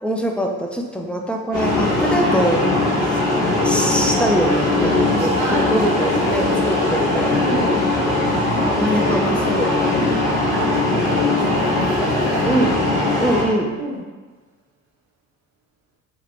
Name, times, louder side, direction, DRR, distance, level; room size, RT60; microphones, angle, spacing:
voice 1, 0.0-2.6 3.2-7.6 8.7-10.1 12.4-12.7 13.2-13.7, equal, 5° left, 0 dB, 0.3 m, -23 dB
sound 1, 1.5-13.4, left 2 dB, 75° left, 1.3 m, -20 dB
voice 2, 4.9-6.7 7.4-7.8 9.9-12.5 13.8-14.0, right 3 dB, 70° right, -6 dB, 0.8 m, -30 dB
2.9 x 2.8 x 3.0 m, 1.3 s
hypercardioid pair, 60°, 40 cm